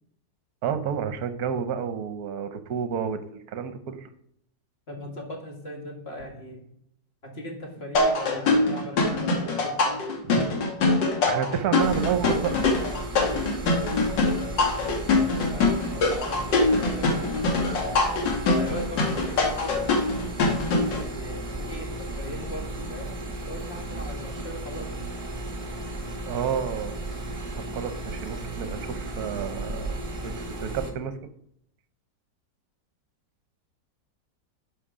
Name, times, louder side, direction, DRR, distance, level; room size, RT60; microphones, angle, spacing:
voice 1, 0.6-3.2 3.5-4.1 10.2-10.5 11.3-12.5 26.2-26.9 27.6-30.0 30.2-31.3, right 8 dB, 65° right, 10 dB, 1.3 m, -30 dB
voice 2, 4.9-6.6 7.2-9.9 15.0-17.9 18.6-20.1 20.9-24.9, equal, 35° left, 1 dB, 2.2 m, -39 dB
sound 1, 7.9-21.0, left 3 dB, 80° left, 2.2 m, -23 dB
sound 2, 11.8-30.9, right 2 dB, 25° right, 0.9 m, -35 dB
11.5 x 5.6 x 5.0 m, 0.71 s
omnidirectional pair, 1.9 m